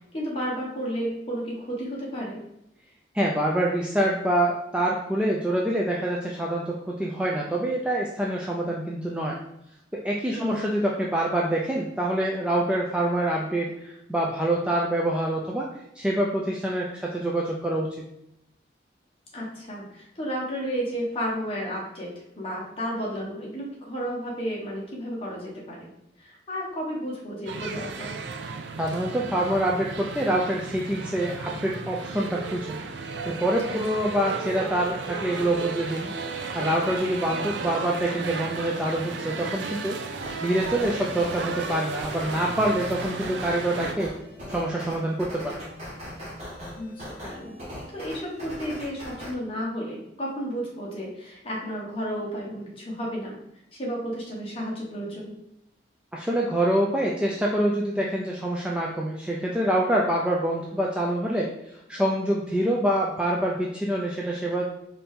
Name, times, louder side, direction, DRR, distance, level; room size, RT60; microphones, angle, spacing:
voice 1, 0.1-2.4 10.3-10.6 19.3-25.9 26.2-28.1 33.7-33.8 46.8-47.5 47.9-53.4 53.8-55.3, equal, 30° left, -4 dB, 1.1 m, -32 dB
voice 2, 3.1-9.4 10.0-15.7 16.0-17.9 28.8-32.8 33.3-36.1 36.5-40.0 40.4-44.1 44.5-45.5 56.1-64.6, right 1 dB, 5° right, -3 dB, 0.3 m, -26 dB
sound 1, 27.5-43.9, right 4 dB, 75° right, 0.4 m, -34 dB
sound 2, 40.2-49.3, equal, 35° right, 1.3 m, -40 dB
4.2 x 2.6 x 3.5 m, 0.83 s
head